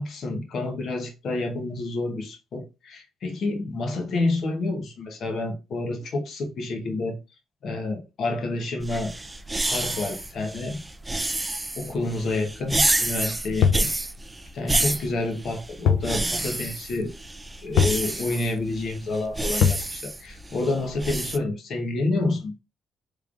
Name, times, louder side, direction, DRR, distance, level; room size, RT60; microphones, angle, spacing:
voice 1, 0.0-7.2 7.6-9.1 9.6-10.8 11.8-13.9 14.5-17.1 17.6-22.6, left 2 dB, 60° left, 0.9 m, -29 dB
sound 1, 8.8-21.4, right 2 dB, 15° right, 0.3 m, -29 dB
sound 2, 13.6-13.9 15.9-16.1 16.4-16.5 17.8-18.1 19.6-19.9, left 7 dB, 90° left, 0.4 m, -21 dB
3.6 x 3.2 x 2.4 m
cardioid pair, 90°, 0 cm